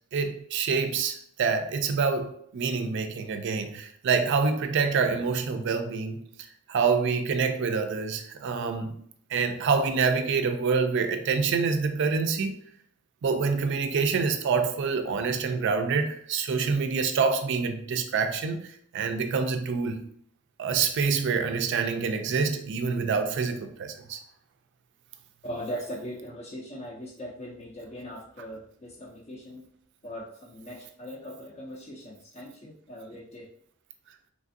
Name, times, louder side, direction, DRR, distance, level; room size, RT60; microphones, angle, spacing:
voice 1, 0.1-6.2 6.7-9.0 9.3-12.6 13.2-20.0 20.6-24.2, right 5 dB, 60° right, 0.4 m, -26 dB
voice 2, 25.4-29.6 30.0-33.5, equal, 30° left, 0.4 m, -40 dB
3.3 x 2.5 x 2.5 m
head